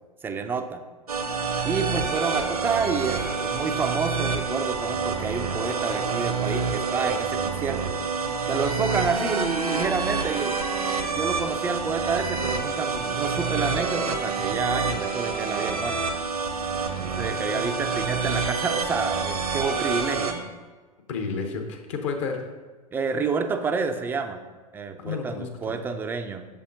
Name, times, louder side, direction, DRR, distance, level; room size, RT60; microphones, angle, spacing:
voice 1, 0.2-0.8 1.6-7.9 8.5-10.5 11.1-16.0 17.0-20.5 22.9-24.4 24.7-26.5, right 5 dB, 10° right, 7 dB, 0.3 m, -29 dB
sound 1, 1.1-20.3, right 5 dB, 75° right, 0.7 m, -27 dB
voice 2, 17.3-17.6 21.1-22.5 25.0-25.5, left 5 dB, 50° left, 4 dB, 0.9 m, -31 dB
6.6 x 5.5 x 2.6 m, 1.3 s
figure-of-eight pair, 90°, 19 cm